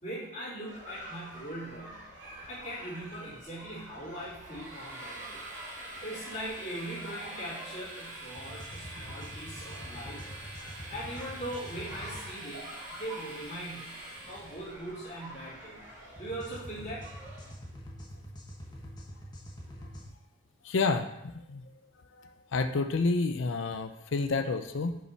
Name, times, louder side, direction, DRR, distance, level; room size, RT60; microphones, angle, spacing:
voice 1, 0.0-2.1 2.5-5.4 6.0-10.2 10.9-15.8 16.2-17.3, right 1 dB, 35° left, -9 dB, 2.9 m, -41 dB
sound 1, 0.7-17.5, right 1 dB, 70° right, 2.2 m, -48 dB
Train, 4.3-14.8, right 2 dB, 40° right, 1.5 m, -46 dB
sound 2, 8.4-12.3 16.2-20.1, equal, 20° left, 1.1 m, -45 dB
voice 2, 20.6-21.7 22.2-25.0, left 3 dB, 75° left, 8 dB, 0.5 m, -30 dB
6.5 x 5.3 x 4.5 m, 0.84 s
head